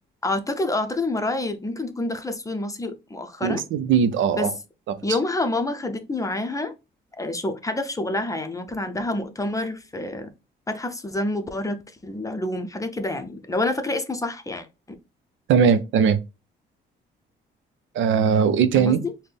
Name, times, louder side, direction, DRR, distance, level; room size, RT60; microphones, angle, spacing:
voice 1, 0.2-3.6 4.3-4.5 5.0-6.7 7.2-10.3 10.7-14.7 18.7-19.1, left 2 dB, 15° left, 0.7 m, -28 dB
voice 2, 3.4-4.5 4.9-5.0 15.5-16.2 17.9-19.0, right 7 dB, 75° right, 0.6 m, -19 dB
4.1 x 2.2 x 3.3 m
cardioid pair, 90°, 20 cm